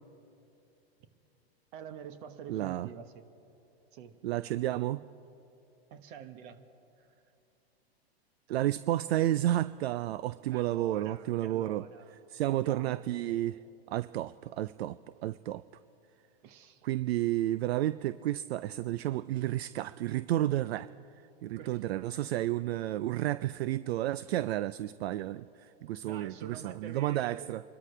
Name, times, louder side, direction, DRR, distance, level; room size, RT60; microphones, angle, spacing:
voice 1, 1.7-3.3 3.9-4.2 5.9-6.7 7.0-7.1 10.5-12.2 12.5-13.0 16.4-16.8 21.6-21.8 23.4-23.5 26.0-27.6, right 8 dB, 50° right, 10 dB, 1.3 m, -47 dB
voice 2, 2.5-2.9 4.2-5.0 8.5-11.8 12.3-13.6 13.9-15.6 16.8-20.9 21.4-27.6, right 14 dB, 75° right, 16 dB, 0.5 m, -31 dB
26.5 x 13.0 x 3.3 m, 2.7 s
hypercardioid pair, 115°, 32 cm